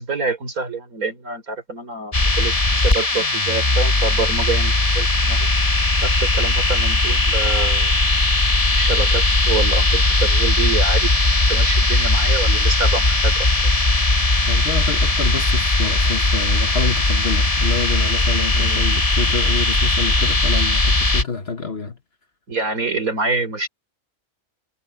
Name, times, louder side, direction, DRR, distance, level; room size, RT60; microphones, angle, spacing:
voice 1, 0.0-5.5 6.0-7.9 8.7-11.1 11.5-13.5 18.5-18.9 22.5-23.7, right 4 dB, 70° right, 4.4 m, -26 dB
sound 1, 2.1-21.2, left 2 dB, 25° left, 1.6 m, -18 dB
voice 2, 14.5-22.0, left 5 dB, 45° left, 1.5 m, -28 dB
omnidirectional pair, 1.5 m